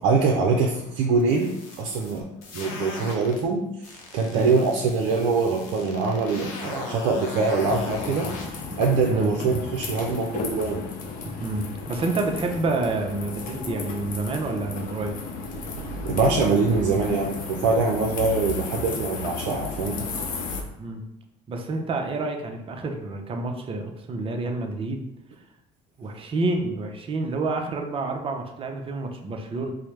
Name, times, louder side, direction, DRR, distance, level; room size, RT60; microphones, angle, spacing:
voice 1, 0.0-2.2 2.5-10.8 15.8-20.0, right 4 dB, 75° right, -1 dB, 0.5 m, -24 dB
sound 1, 1.2-3.4 3.8-8.5, left 3 dB, 90° left, 0.8 m, -38 dB
sound 2, 7.6-20.6, left 4 dB, 55° left, 0.6 m, -34 dB
voice 2, 11.4-15.1 20.8-21.0 21.5-25.1 26.0-29.7, right 3 dB, 35° right, 3 dB, 0.6 m, -28 dB
4.5 x 2.1 x 3.2 m, 0.86 s
supercardioid pair, 85°, 17 cm